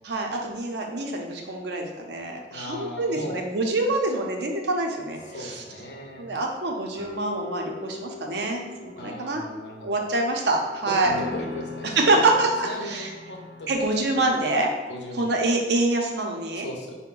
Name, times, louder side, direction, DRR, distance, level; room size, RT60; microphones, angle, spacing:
voice 1, 0.0-5.6 6.2-9.4 9.8-11.1 12.0-13.1 13.7-14.7 15.1-16.7, right 2 dB, 65° right, 1 dB, 0.6 m, -25 dB
voice 2, 2.5-3.4 5.2-6.3 9.0-10.0 10.9-12.3 12.6-14.1 14.9-15.3 16.6-17.0, left 1 dB, 75° left, 0 dB, 0.7 m, -37 dB
sound 1, 5.2-14.0, left 3 dB, 35° right, 1.1 m, -41 dB
4.5 x 2.1 x 3.8 m, 1.2 s
head